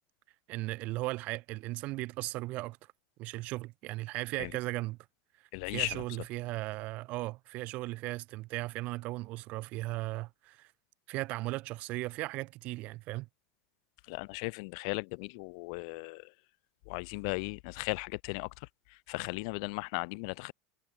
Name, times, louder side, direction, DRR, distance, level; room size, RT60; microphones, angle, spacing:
voice 1, 0.5-2.8 3.2-5.0 5.6-10.7 11.1-13.3, right 20 dB, 40° right, 0.4 m, -37 dB
voice 2, 5.5-6.0 14.1-16.3 16.9-20.5, left 32 dB, 55° left, 0.3 m, -37 dB
supercardioid pair, 160°, 4 cm